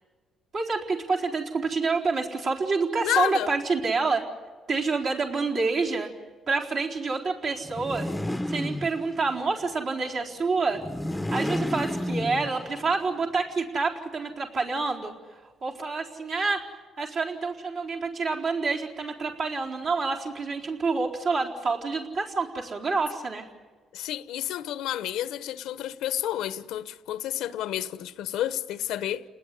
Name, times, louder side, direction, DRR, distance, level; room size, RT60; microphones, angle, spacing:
voice 1, 0.5-4.2 4.7-6.1 6.5-8.1 8.5-10.8 11.3-15.1 15.6-16.7 17.0-23.5, right 4 dB, 60° right, 4.2 m, -27 dB
voice 2, 3.0-3.5 23.9-29.2, left 12 dB, 90° left, 1.0 m, -30 dB
sound 1, 7.6-9.4 10.7-12.9, left 1 dB, 10° left, 0.8 m, -31 dB
29.5 x 20.0 x 10.0 m
cardioid pair, 90°, 0 cm